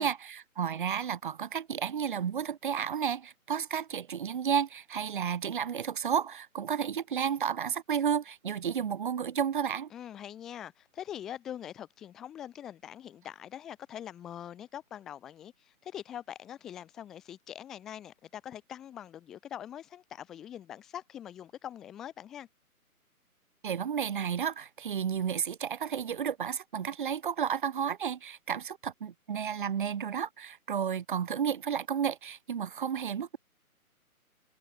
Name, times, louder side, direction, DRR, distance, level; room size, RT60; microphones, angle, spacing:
voice 1, 0.0-9.9 23.6-33.4, right 8 dB, 35° right, 6.6 m, -32 dB
voice 2, 9.9-22.5, left 10 dB, ahead, 1.0 m, -43 dB
hypercardioid pair, 175°, 44 cm